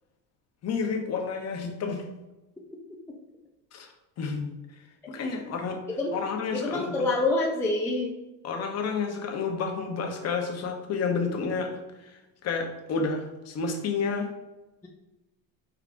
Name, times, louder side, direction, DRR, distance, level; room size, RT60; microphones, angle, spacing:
voice 1, 0.6-2.0 3.7-3.9 4.2-4.5 5.1-5.8 6.1-7.1 8.4-11.7 12.0-14.3, left 5 dB, 40° left, 3 dB, 0.8 m, -30 dB
voice 2, 6.5-8.1, left 2 dB, 5° left, -2 dB, 0.3 m, -26 dB
4.7 x 3.5 x 2.5 m, 1.0 s
cardioid pair, 130°, 40 cm